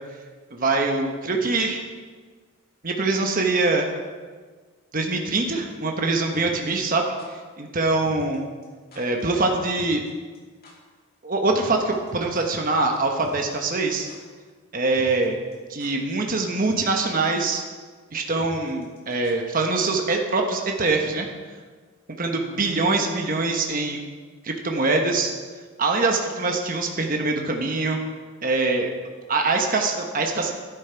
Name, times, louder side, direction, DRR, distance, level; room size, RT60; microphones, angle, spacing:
voice 1, 0.5-1.8 2.8-3.9 4.9-7.0 7.6-8.4 9.0-10.0 11.2-14.1 14.7-15.4 15.7-17.6 18.1-21.3 22.2-24.0 24.4-25.3 25.8-28.0 28.4-28.9 29.3-30.5, right 3 dB, 40° right, 2 dB, 1.1 m, -23 dB
sound 1, 6.3-7.3 8.1-8.4 8.6-8.7 8.9-9.2 9.5-9.6 9.8-10.1 10.3-10.4 10.6-10.7 11.5-12.7 12.9-13.0 13.2-13.8 14.1-14.2 14.9-15.3 15.5-16.1 16.4-16.5 16.7-17.0 17.2-17.3 17.5-17.6 18.4-19.6 19.8-19.9, left 1 dB, 45° left, 2.6 m, -46 dB
12.0 x 10.5 x 4.5 m, 1.5 s
head